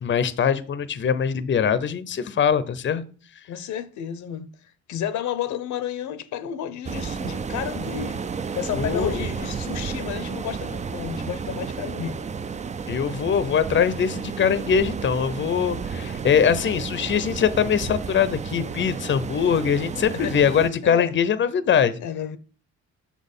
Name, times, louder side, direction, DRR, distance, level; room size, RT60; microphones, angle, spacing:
voice 1, 0.0-3.0 8.7-9.2 12.9-21.9, left 7 dB, 40° left, 0.6 m, -22 dB
voice 2, 3.5-4.5 4.9-8.2 8.5-12.2 20.1-20.4 20.8-21.1 22.0-22.4, left 9 dB, 70° left, 0.7 m, -31 dB
sound 1, 6.8-20.7, right 5 dB, 25° right, 0.4 m, -32 dB
6.0 x 4.1 x 5.4 m
cardioid pair, 90°, 30 cm